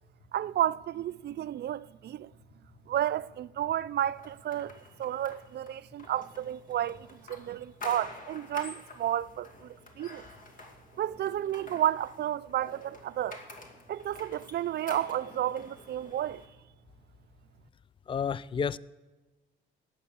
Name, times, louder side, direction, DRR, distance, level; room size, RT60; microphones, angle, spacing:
voice 1, 0.3-2.3 2.9-10.3 11.0-13.4 13.9-16.5, right 11 dB, 55° right, 0.5 m, -32 dB
sound 1, 4.2-16.5, left 2 dB, 40° left, 2.4 m, -48 dB
voice 2, 18.1-18.8, left 6 dB, 25° left, 0.4 m, -30 dB
15.5 x 9.4 x 6.9 m
cardioid pair, 90°, 20 cm